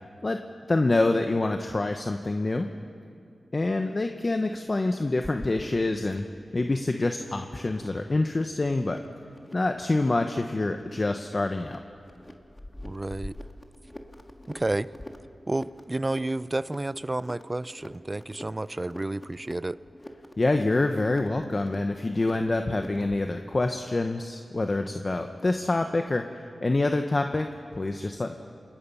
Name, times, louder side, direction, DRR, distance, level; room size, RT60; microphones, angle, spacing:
voice 1, 0.2-2.7 3.5-6.3 6.5-9.0 9.5-11.8 20.4-28.3, left 2 dB, 40° left, 5 dB, 1.0 m, -26 dB
sound 1, 5.2-23.3, left 1 dB, 15° left, 1.8 m, -46 dB
voice 2, 12.8-13.3 14.5-14.9 15.5-19.8, right 2 dB, 25° right, 17 dB, 0.5 m, -30 dB
28.0 x 21.0 x 5.6 m, 2.4 s
cardioid pair, 60°, 0 cm